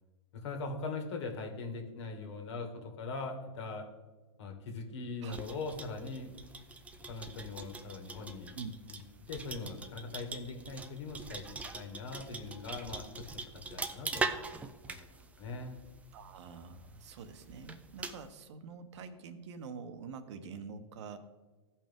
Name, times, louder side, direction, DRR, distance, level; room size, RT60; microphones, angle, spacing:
voice 1, 0.3-3.8 4.4-6.4 7.1-8.6 8.9-9.0 9.3-13.3 13.5-14.3 14.9-15.8, left 3 dB, 60° left, 4 dB, 2.0 m, -41 dB
sound 1, 5.3-18.3, right 4 dB, 10° right, 0.4 m, -43 dB
voice 2, 16.1-21.2, right 5 dB, 60° right, 9 dB, 1.0 m, -46 dB
16.0 x 5.6 x 3.6 m, 1.3 s
hypercardioid pair, 130°, 17 cm